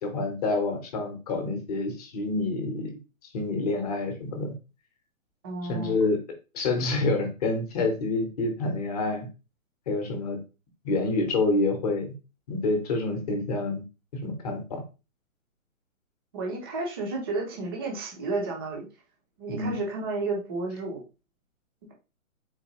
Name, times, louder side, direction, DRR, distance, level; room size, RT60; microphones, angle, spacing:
voice 1, 0.0-2.9 3.3-4.5 5.7-6.2 6.5-9.3 9.9-10.4 10.8-12.1 12.5-13.8 14.2-14.8 19.5-19.7, left 3 dB, 30° left, 4 dB, 0.9 m, -27 dB
voice 2, 5.4-6.0 16.3-18.9 19.4-21.0, right 3 dB, 20° right, -1 dB, 0.6 m, -32 dB
3.9 x 2.9 x 2.9 m, 0.30 s
hypercardioid pair, 160°, 41 cm